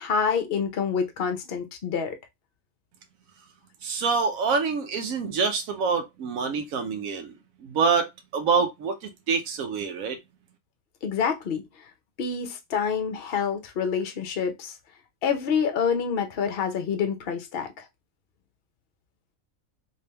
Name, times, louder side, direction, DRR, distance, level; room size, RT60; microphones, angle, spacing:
voice 1, 0.0-2.1 11.0-11.6 12.2-14.7 15.2-17.8, left 6 dB, 55° left, 0.8 m, -27 dB
voice 2, 3.8-7.3 7.6-10.2, right 5 dB, 85° right, 1.1 m, -26 dB
3.3 x 3.0 x 2.8 m
omnidirectional pair, 1.4 m